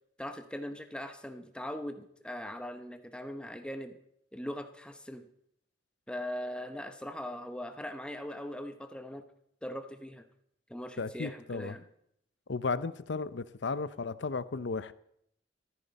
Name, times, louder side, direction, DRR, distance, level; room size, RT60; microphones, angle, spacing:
voice 1, 0.2-4.0 4.3-5.3 6.1-9.2 9.6-10.3 10.7-11.8, equal, 5° left, 1.0 m, -40 dB
voice 2, 11.0-11.8 12.5-14.9, left 4 dB, 75° left, 0.6 m, -34 dB
15.0 x 14.0 x 4.1 m
head